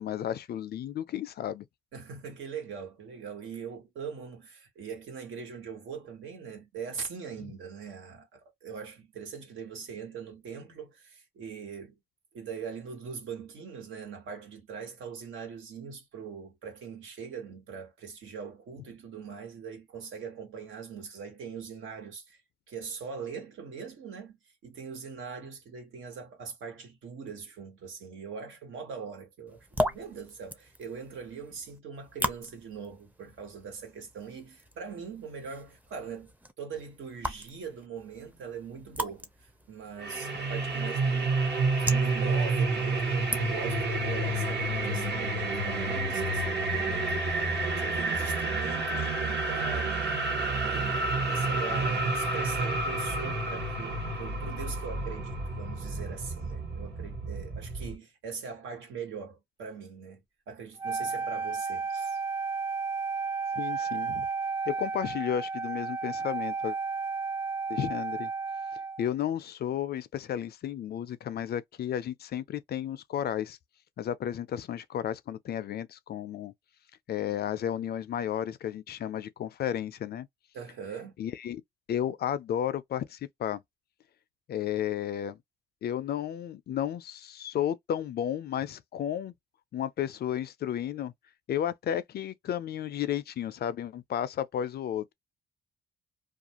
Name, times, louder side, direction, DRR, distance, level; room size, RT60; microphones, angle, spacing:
voice 1, 0.0-1.7 63.6-64.3 64.7-66.8 67.7-68.3 69.0-73.6 74.0-76.5 77.1-80.3 81.2-81.6 81.9-83.6 84.5-85.4 85.8-89.3 89.7-91.1 91.5-95.1, left 10 dB, 55° left, 0.4 m, -33 dB
voice 2, 1.9-12.0 12.3-22.4 22.7-24.4 24.6-36.3 36.6-41.4 41.8-47.4 47.7-50.2 50.6-60.2 60.5-62.2 80.5-81.1, right 6 dB, 75° right, 1.3 m, -41 dB
sound 1, 29.5-43.9, equal, 10° right, 0.6 m, -39 dB
sound 2, 40.0-57.9, right 2 dB, 55° right, 1.3 m, -29 dB
Wind instrument woodwind instrument, 60.8-69.1, right 4 dB, 25° right, 1.0 m, -33 dB
2.4 x 2.4 x 2.8 m
cardioid pair, 90°, 20 cm